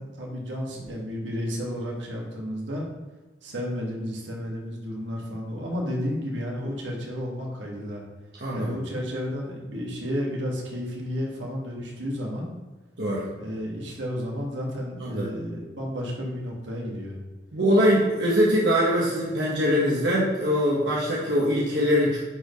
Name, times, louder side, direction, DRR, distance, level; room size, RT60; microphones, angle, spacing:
voice 1, 0.0-2.9 3.4-8.0 8.5-12.5 13.4-17.2, equal, 85° right, -2 dB, 1.9 m, -32 dB
voice 2, 8.4-8.7 13.0-13.2 15.0-15.3 17.5-22.2, equal, 70° right, -6 dB, 1.5 m, -22 dB
10.5 x 4.6 x 3.2 m, 1.2 s
head